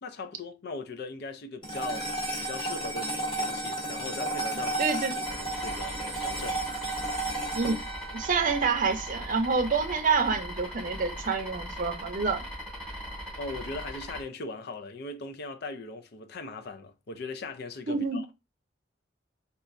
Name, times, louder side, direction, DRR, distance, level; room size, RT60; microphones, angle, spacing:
voice 1, 0.0-4.9 5.1-6.6 13.4-18.3, left 3 dB, 60° left, 0.5 m, -39 dB
sound 1, 1.6-10.1, right 2 dB, 25° left, 1.2 m, -33 dB
voice 2, 4.8-5.1 7.5-7.8 8.1-12.4 17.9-18.2, right 5 dB, 45° right, 0.6 m, -27 dB
sound 2, 5.2-14.2, equal, 5° left, 1.6 m, -39 dB
4.2 x 2.4 x 2.5 m
head